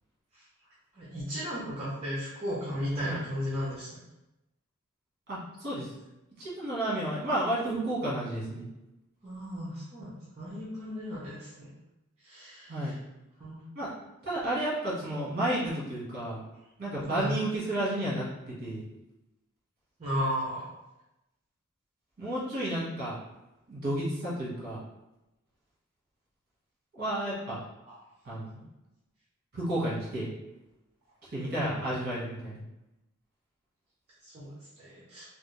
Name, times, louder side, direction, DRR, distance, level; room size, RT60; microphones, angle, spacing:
voice 1, 0.9-3.9 9.2-11.7 12.2-13.0 13.4-13.6 17.1-17.3 20.0-20.6 27.9-28.0 31.5-31.9 34.2-34.5 34.8-35.2, equal, 30° right, -8 dB, 0.8 m, -35 dB
voice 2, 5.3-5.9 6.4-8.7 12.7-13.0 13.7-13.9 14.2-16.4 16.8-18.9 22.2-23.1 23.7-24.8 26.9-27.6 28.2-28.6 29.5-30.3 31.3-32.6, right 1 dB, 45° right, -7 dB, 1.4 m, -32 dB
3.3 x 2.5 x 3.2 m, 0.96 s
head